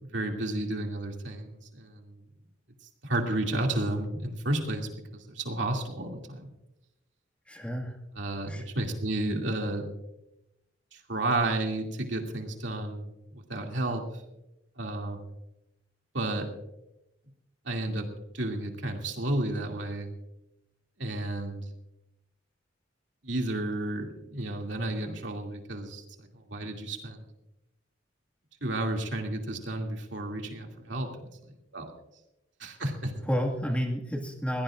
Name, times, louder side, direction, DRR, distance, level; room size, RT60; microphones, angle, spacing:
voice 1, 0.0-2.2 3.0-6.5 8.1-9.9 10.9-14.0 14.8-15.2 16.1-16.5 17.6-20.1 21.0-21.6 23.2-27.3 28.6-31.9 32.6-33.1, right 1 dB, 70° right, 2 dB, 2.6 m, -32 dB
voice 2, 7.5-7.9 8.5-8.6 33.3-34.6, equal, 5° left, 0 dB, 1.9 m, -30 dB
22.0 x 17.0 x 2.5 m, 0.91 s
head